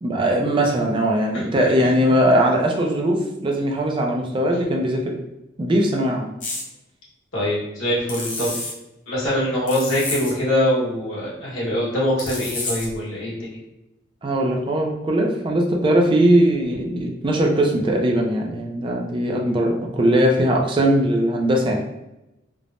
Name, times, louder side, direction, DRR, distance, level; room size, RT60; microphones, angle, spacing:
voice 1, 0.0-5.2 5.6-6.3 14.2-21.9, right 1 dB, 25° right, 0 dB, 0.3 m, -20 dB
voice 2, 1.3-2.0 7.3-8.6 9.1-13.6, left 1 dB, 90° left, -6 dB, 1.2 m, -23 dB
sound 1, 6.4-6.6 8.1-8.7 9.7-10.3 12.2-12.9, left 2 dB, 40° left, 0.7 m, -29 dB
3.2 x 2.0 x 2.5 m, 0.91 s
head